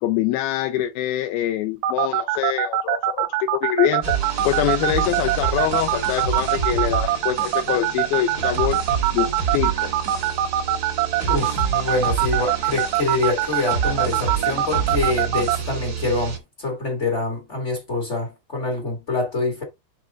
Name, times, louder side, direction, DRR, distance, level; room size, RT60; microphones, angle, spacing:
voice 1, 0.0-8.8 9.1-9.9, left 12 dB, 85° left, 2.2 m, -24 dB
sound 1, 1.8-15.6, right 13 dB, 80° right, 2.9 m, -22 dB
sound 2, 4.0-16.4, right 6 dB, 55° right, 1.1 m, -28 dB
voice 2, 11.3-19.6, left 3 dB, 60° left, 0.7 m, -25 dB
10.5 x 3.6 x 3.7 m
omnidirectional pair, 4.9 m